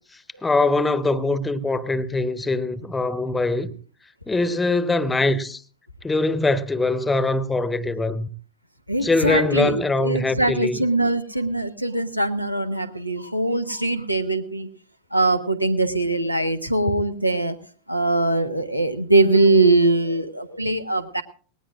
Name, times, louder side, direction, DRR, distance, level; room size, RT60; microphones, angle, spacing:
voice 1, 0.4-3.7 4.3-5.6 6.0-8.3 9.0-10.8, left 2 dB, 10° left, 0.9 m, -22 dB
voice 2, 8.9-14.7 15.1-17.6 17.9-21.2, right 2 dB, 90° right, 1.2 m, -21 dB
19.0 x 19.0 x 2.5 m
figure-of-eight pair, 90°, 0 cm